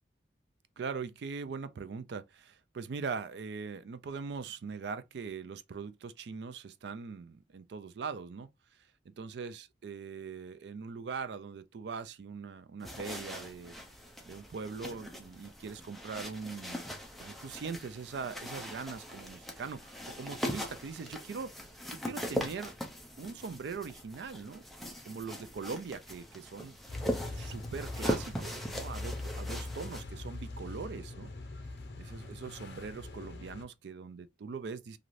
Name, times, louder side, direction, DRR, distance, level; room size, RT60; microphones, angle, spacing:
voice 1, 0.8-8.5 9.2-13.8 14.3-16.8 17.2-22.7 23.2-26.7 27.3-31.3 32.0-35.0, right 5 dB, 65° right, 0.4 m, -41 dB
sound 1, 12.8-30.0, equal, ahead, 0.5 m, -40 dB
sound 2, 26.9-33.6, left 2 dB, 60° left, 0.6 m, -42 dB
3.1 x 2.6 x 2.5 m
head